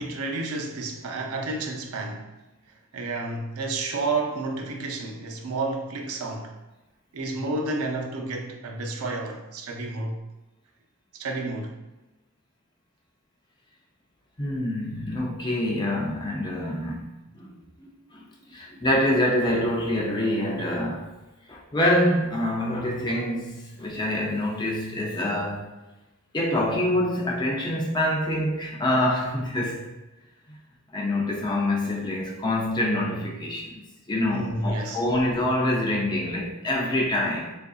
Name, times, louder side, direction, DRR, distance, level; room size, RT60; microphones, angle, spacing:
voice 1, 0.0-2.3 2.9-6.6 7.1-10.2 11.1-11.8 34.3-35.0, right 3 dB, 85° right, 0.5 m, -31 dB
voice 2, 14.4-17.1 17.3-21.1 21.5-25.7 26.3-29.9 30.5-30.6 30.9-37.6, left 1 dB, 20° left, 0.4 m, -26 dB
3.6 x 2.5 x 2.3 m
head